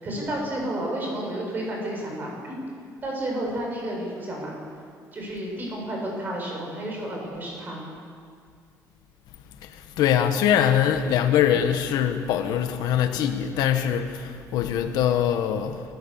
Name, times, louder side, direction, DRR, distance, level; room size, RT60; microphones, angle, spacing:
voice 1, 0.0-2.6 3.0-4.6 5.1-7.8, right 1 dB, 30° right, 7.1 m, -31 dB
voice 2, 9.6-15.8, left 9 dB, 80° left, 1.5 m, -23 dB
27.5 x 15.5 x 7.2 m
cardioid pair, 170°, 7 cm